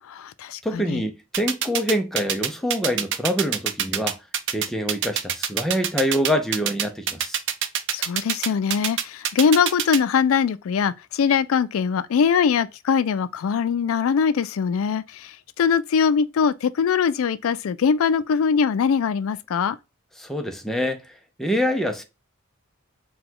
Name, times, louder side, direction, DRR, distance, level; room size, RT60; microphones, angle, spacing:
voice 1, 0.0-1.0 7.9-19.8, left 6 dB, 80° left, 0.4 m, -22 dB
voice 2, 0.6-4.2 4.5-7.4 20.2-22.0, equal, ahead, 0.6 m, -25 dB
sound 1, 1.3-10.0, right 9 dB, 60° right, 0.6 m, -24 dB
4.8 x 2.3 x 3.7 m
head